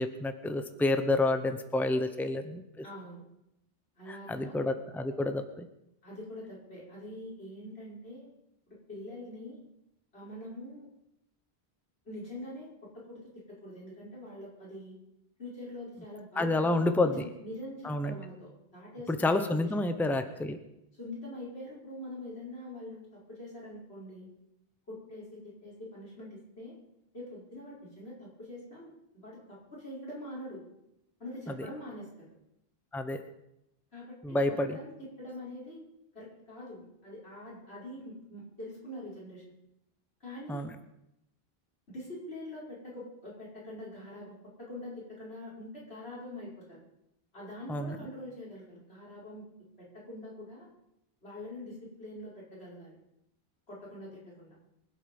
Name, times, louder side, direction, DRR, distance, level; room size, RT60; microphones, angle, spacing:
voice 1, 0.0-2.8 4.1-5.7 16.4-17.2 17.8-18.1 19.1-20.6 31.5-31.7 32.9-33.2 34.2-34.8 40.5-40.7 47.7-48.0, left 2 dB, ahead, 8 dB, 0.9 m, -29 dB
voice 2, 2.8-3.2 4.0-4.6 6.0-8.3 8.7-9.6 10.1-10.9 12.0-15.0 15.4-17.1 17.4-19.1 19.6-19.9 20.9-24.3 24.9-26.8 27.1-30.6 31.2-32.3 33.9-34.4 34.7-35.8 36.1-39.4 40.2-40.7 41.9-46.8 47.3-49.5 49.8-50.7 51.2-53.0 53.7-54.6, left 1 dB, 90° left, -6 dB, 5.5 m, -44 dB
24.5 x 8.3 x 5.3 m, 0.84 s
omnidirectional pair, 1.0 m